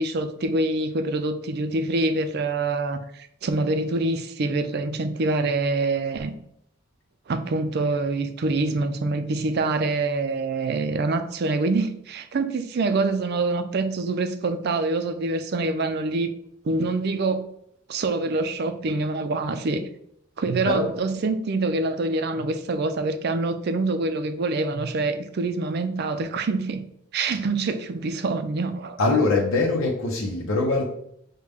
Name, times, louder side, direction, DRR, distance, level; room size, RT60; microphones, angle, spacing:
voice 1, 0.0-6.3 7.3-16.3 16.6-17.5 17.9-19.9 20.4-26.8 27.1-29.0, right 3 dB, 50° right, 0.4 m, -25 dB
voice 2, 29.0-30.9, left 3 dB, 75° left, 0.7 m, -22 dB
6.4 x 2.2 x 3.4 m
head